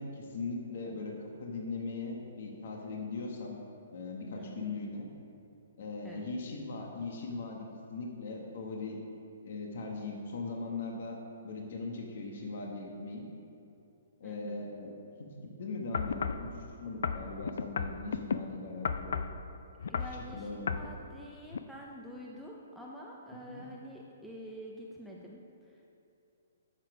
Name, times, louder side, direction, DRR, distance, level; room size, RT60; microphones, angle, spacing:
voice 1, 0.0-3.5 3.9-5.1 5.8-9.0 9.4-13.3 14.2-14.9 15.4-16.5 16.8-19.2 20.3-20.8 23.4-23.7, left 3 dB, 55° left, 0 dB, 1.4 m, -39 dB
voice 2, 4.4-4.7 6.0-6.3 14.2-14.6 19.8-26.0, equal, ahead, -4 dB, 0.6 m, -47 dB
sound 1, 15.9-16.5 17.0-18.4 18.8-19.4 19.8-20.2 20.7-20.9 21.5-21.6, left 6 dB, 70° left, 0.5 m, -33 dB
11.5 x 7.0 x 4.9 m, 2.8 s
hypercardioid pair, 165°, 0 cm